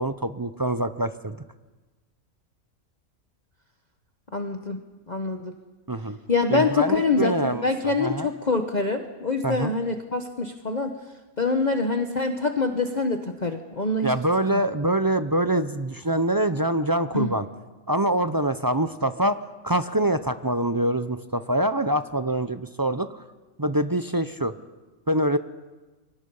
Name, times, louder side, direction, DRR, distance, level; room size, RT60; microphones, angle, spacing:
voice 1, 0.0-1.4 5.9-6.2 6.5-7.7 8.0-8.3 9.4-9.7 14.0-17.5 17.9-19.4 19.6-23.1 23.6-24.5 25.1-25.4, right 1 dB, 25° right, 11 dB, 0.4 m, -24 dB
voice 2, 4.3-4.8 5.1-5.5 6.3-11.0 11.4-14.1 17.1-17.3, left 3 dB, 35° left, 5 dB, 1.1 m, -25 dB
29.0 x 24.0 x 5.5 m, 1.2 s
omnidirectional pair, 1.4 m